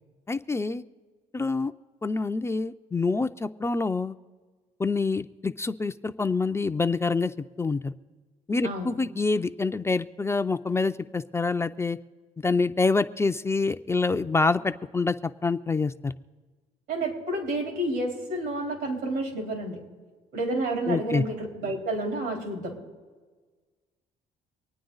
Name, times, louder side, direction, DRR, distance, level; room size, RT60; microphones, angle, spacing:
voice 1, 0.3-0.8 1.3-1.7 2.0-4.1 4.8-7.9 8.5-12.0 12.4-16.1 20.9-21.2, left 3 dB, 15° left, 9 dB, 0.4 m, -26 dB
voice 2, 16.9-19.8 20.3-22.8, right 2 dB, 85° right, 1 dB, 4.0 m, -30 dB
25.0 x 9.4 x 3.9 m, 1.4 s
cardioid pair, 110°, 17 cm